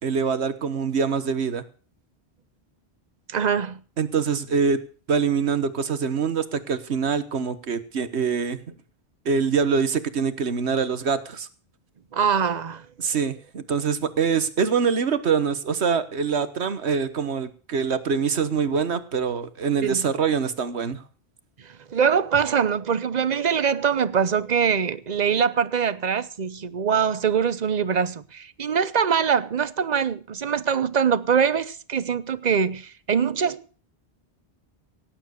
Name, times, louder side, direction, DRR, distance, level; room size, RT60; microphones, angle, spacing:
voice 1, 0.0-1.6 4.0-4.8 5.1-8.6 9.2-11.5 13.0-21.0, right 6 dB, 80° right, 1.5 m, -24 dB
voice 2, 3.3-3.8 12.1-12.9 19.8-20.1 21.6-33.8, right 7 dB, 45° right, 0.9 m, -23 dB
17.5 x 9.2 x 6.5 m
omnidirectional pair, 1.1 m